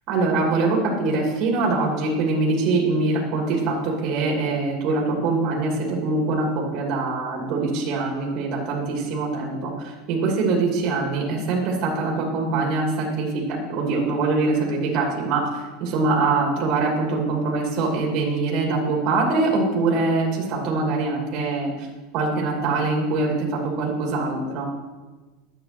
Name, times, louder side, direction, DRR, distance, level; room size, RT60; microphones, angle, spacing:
voice 1, 0.1-13.4 13.7-21.9 22.1-24.7, right 3 dB, 40° right, -1 dB, 2.5 m, -23 dB
11.0 x 8.7 x 5.9 m, 1.3 s
supercardioid pair, 165°, 0 cm